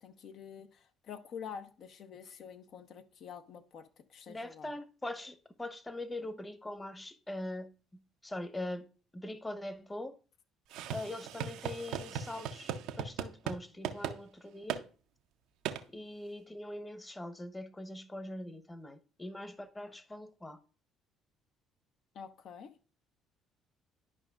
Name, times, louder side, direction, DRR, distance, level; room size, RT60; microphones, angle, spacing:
voice 1, 0.0-4.7 22.1-22.7, left 7 dB, 60° left, 0.8 m, -47 dB
voice 2, 4.3-8.9 9.1-10.2 10.9-14.8 15.9-20.6, left 1 dB, 15° left, 1.0 m, -42 dB
sound 1, 10.7-13.6 13.8-14.2 14.7-14.8 15.7-15.8, right 9 dB, 75° right, 0.6 m, -37 dB
11.0 x 5.2 x 2.4 m
hypercardioid pair, 60°, 0 cm